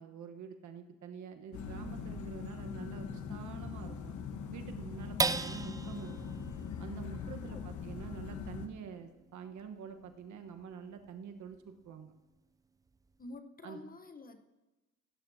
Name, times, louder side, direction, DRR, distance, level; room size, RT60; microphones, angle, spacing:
voice 1, 0.0-4.1 4.5-6.3 6.8-12.1 13.6-13.8, right 7 dB, 70° right, 6 dB, 1.1 m, -47 dB
sound 1, 1.5-8.7, left 6 dB, 75° left, 1.1 m, -42 dB
sound 2, 5.2-11.9 12.4-12.5 12.9-13.4, right 3 dB, 10° right, 0.3 m, -40 dB
voice 2, 7.4-7.8 13.2-14.4, left 2 dB, 30° left, 8 dB, 0.9 m, -49 dB
16.0 x 11.5 x 2.7 m, 1.1 s
cardioid pair, 90°, 30 cm